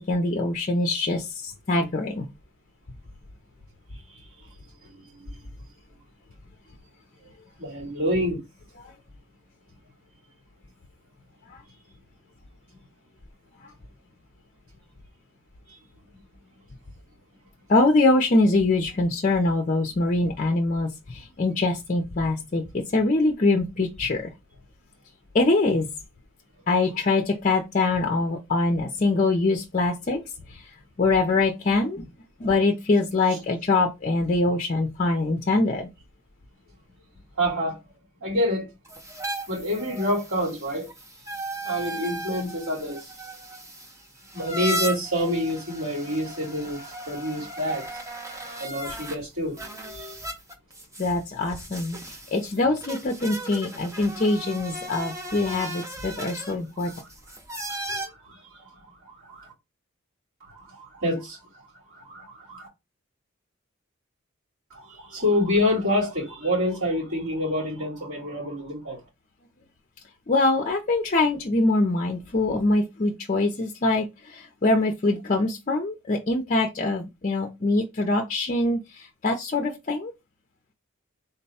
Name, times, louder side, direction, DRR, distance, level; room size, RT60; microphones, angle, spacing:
voice 1, 0.1-2.3 11.5-11.6 13.6-13.7 17.7-24.3 25.3-25.9 26.7-30.2 30.5-30.7 31.0-32.0 32.4-35.9 51.0-52.0 52.3-56.9 70.3-80.1, left 2 dB, 35° left, 0.5 m, -23 dB
voice 2, 4.1-4.5 4.8-5.3 7.6-8.4 15.7-15.8 33.3-33.4 37.4-37.8 38.2-38.7 39.5-40.9 41.6-43.1 44.3-48.0 48.6-50.2 56.8-57.0 57.9-59.5 60.5-61.4 61.9-62.7 64.7-69.0, left 1 dB, 85° right, 2.6 m, -28 dB
sound 1, 38.9-49.2 49.6-58.1, right 1 dB, 15° right, 0.6 m, -36 dB
3.8 x 2.2 x 4.1 m
head